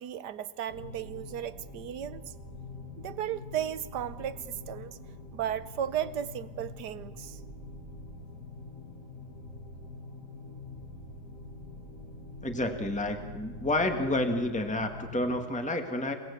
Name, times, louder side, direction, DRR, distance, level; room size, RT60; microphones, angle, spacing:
voice 1, 0.0-2.3 3.0-5.0 5.3-7.4, right 10 dB, 80° right, 15 dB, 1.5 m, -35 dB
sound 1, 0.7-15.4, left 2 dB, 50° left, 2.9 m, -45 dB
voice 2, 12.4-16.1, left 1 dB, 5° left, 5 dB, 1.8 m, -30 dB
27.5 x 18.5 x 8.4 m, 1.4 s
omnidirectional pair, 1.8 m